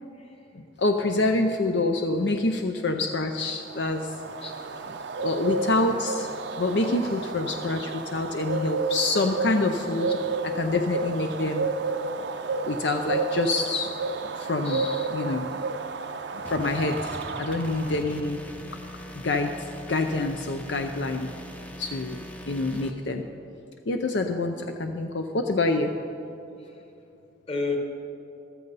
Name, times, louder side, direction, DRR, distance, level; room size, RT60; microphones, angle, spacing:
voice 1, 0.8-4.1 5.2-6.3 6.6-10.2 10.4-11.7 12.7-13.9 14.4-14.8 15.1-15.6 16.3-18.4 19.1-19.6 19.9-21.3 21.8-22.2 22.5-23.2 23.9-25.9, left 2 dB, 65° left, 5 dB, 0.6 m, -26 dB
Bird, 3.5-18.2, right 4 dB, 65° right, 0.6 m, -31 dB
voice 2, 4.4-5.3 7.0-7.1 10.1-10.2 14.6-15.1 26.6-26.8 27.5-27.8, left 4 dB, 30° left, 2 dB, 1.4 m, -34 dB
sound 1, 16.4-22.9, equal, 10° left, 0.6 m, -41 dB
14.0 x 13.0 x 4.1 m, 2.8 s
head